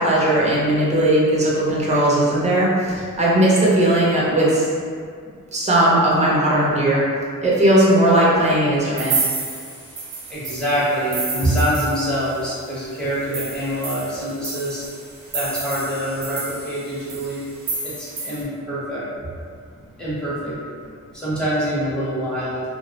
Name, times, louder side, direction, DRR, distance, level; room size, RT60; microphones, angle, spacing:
voice 1, 0.0-4.6 5.5-7.0 7.4-9.1, right 1 dB, 20° right, -6 dB, 0.6 m, -17 dB
sound 1, 9.0-12.4 12.8-12.9 13.2-18.4, right 4 dB, 65° right, 0.5 m, -30 dB
voice 2, 10.3-14.8 15.3-17.4 17.8-19.0 20.0-20.5 21.1-22.6, equal, 5° left, -10 dB, 0.8 m, -25 dB
2.2 x 2.0 x 2.7 m, 2.1 s
wide cardioid pair, 95°, 33 cm